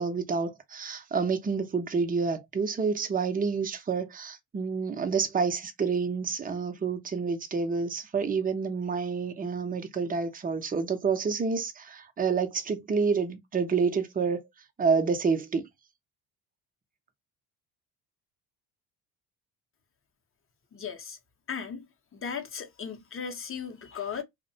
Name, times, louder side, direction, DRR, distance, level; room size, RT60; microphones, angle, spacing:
voice 1, 0.0-14.4 14.8-15.7, right 5 dB, 20° right, 0.6 m, -28 dB
voice 2, 20.7-21.2 21.5-21.8 22.1-24.2, left 6 dB, 30° left, 0.7 m, -36 dB
2.5 x 2.1 x 2.6 m
supercardioid pair, 70°, 43 cm